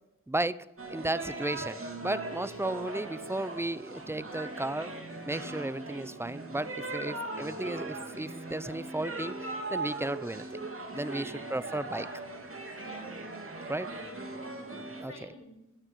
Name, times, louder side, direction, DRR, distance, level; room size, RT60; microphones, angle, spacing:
voice 1, 0.3-0.6 0.9-4.9 5.3-9.3 9.7-10.6 10.9-12.1 13.7-13.9 15.0-15.3, right 1 dB, 10° right, 17 dB, 0.6 m, -34 dB
sound 1, 0.8-15.0, right 2 dB, 45° right, 2.7 m, -39 dB
voice 2, 2.5-2.8 11.1-11.4 12.8-13.1 13.6-14.1 14.4-15.6, left 1 dB, 45° left, -3 dB, 7.4 m, -52 dB
15.5 x 9.6 x 8.5 m, 0.93 s
wide cardioid pair, 70°, 32 cm